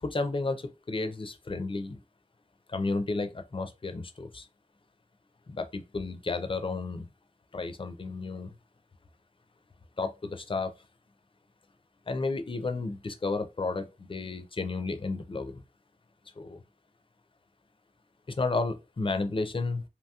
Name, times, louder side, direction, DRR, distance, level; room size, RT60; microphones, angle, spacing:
voice 1, 0.0-2.0 2.7-4.5 5.5-7.1 7.5-8.5 10.0-10.7 12.1-15.6 16.4-16.6 18.3-19.8, left 3 dB, 35° left, 0.4 m, -32 dB
2.8 x 2.7 x 2.3 m
wide cardioid pair, 50°, 14 cm